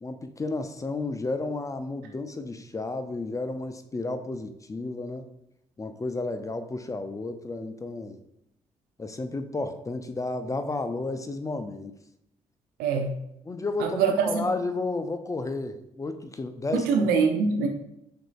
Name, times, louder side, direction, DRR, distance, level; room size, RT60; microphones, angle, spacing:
voice 1, 0.0-5.3 5.8-8.2 9.0-12.0 13.4-17.1, left 2 dB, 20° left, 10 dB, 0.4 m, -32 dB
voice 2, 12.8-13.1 13.8-14.4 16.7-17.7, right 5 dB, 70° right, 4 dB, 0.6 m, -24 dB
5.9 x 2.6 x 2.3 m, 0.79 s
figure-of-eight pair, 40°, 17 cm